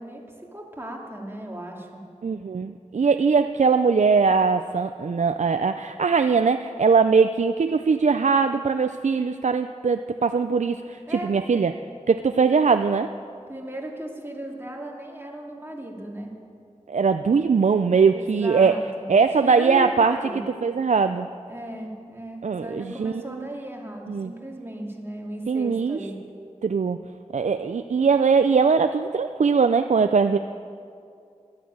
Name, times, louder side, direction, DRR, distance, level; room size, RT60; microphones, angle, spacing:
voice 1, 0.0-2.0 11.1-11.3 13.5-16.3 18.1-20.4 21.5-26.2, right 1 dB, 20° right, -1 dB, 2.3 m, -36 dB
voice 2, 2.2-11.7 12.1-13.1 16.9-18.8 19.1-20.2 20.6-21.3 22.4-23.5 24.1-24.3 25.5-26.0 26.6-27.0 27.3-30.4, right 5 dB, 75° right, 9 dB, 0.4 m, -21 dB
12.5 x 10.0 x 8.6 m, 2.4 s
wide cardioid pair, 55°, 12 cm